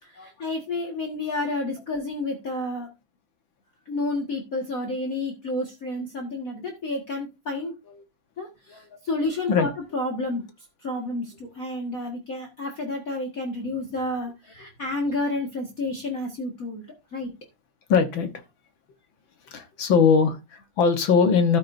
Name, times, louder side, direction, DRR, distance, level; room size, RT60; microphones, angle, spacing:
voice 1, 0.0-2.9 3.9-7.7 8.4-10.4 10.8-16.9 17.1-17.3, left 2 dB, 40° left, 1 dB, 2.0 m, -30 dB
voice 2, 17.9-18.3 19.5-21.6, left 5 dB, 65° left, 8 dB, 1.9 m, -21 dB
12.5 x 9.3 x 2.6 m, 0.25 s
omnidirectional pair, 2.4 m